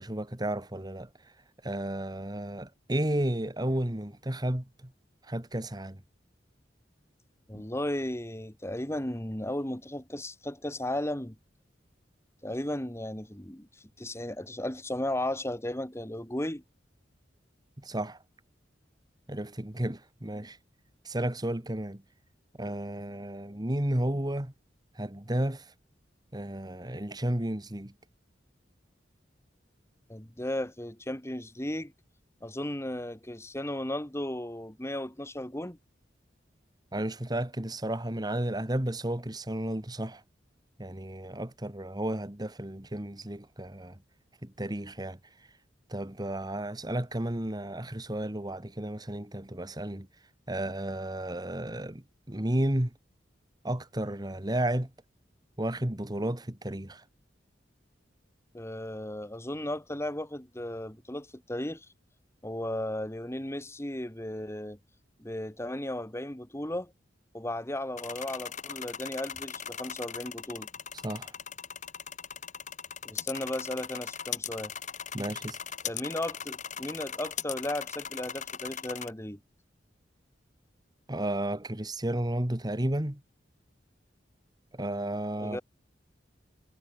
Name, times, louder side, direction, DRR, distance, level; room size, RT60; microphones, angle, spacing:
voice 1, 0.0-1.3 1.6-4.9 5.2-6.0 7.5-7.6 17.8-18.2 19.3-20.6 21.0-22.0 22.6-24.5 24.9-25.7 26.3-27.9 36.9-40.2 40.8-44.0 44.4-45.2 45.9-50.1 50.5-52.9 53.6-54.9 55.6-57.0 71.0-71.3 75.1-75.6 81.1-83.2 84.7-85.6, right 1 dB, 25° right, 1.7 m, -32 dB
voice 2, 7.5-11.4 12.4-13.7 14.0-16.6 30.1-31.9 32.4-35.8 58.5-61.9 62.4-64.8 65.2-66.9 67.3-70.7 73.0-74.7 75.8-79.4 85.4-85.6, left 1 dB, 15° left, 2.4 m, -35 dB
sound 1, 68.0-79.1, left 8 dB, 45° left, 4.5 m, -39 dB
head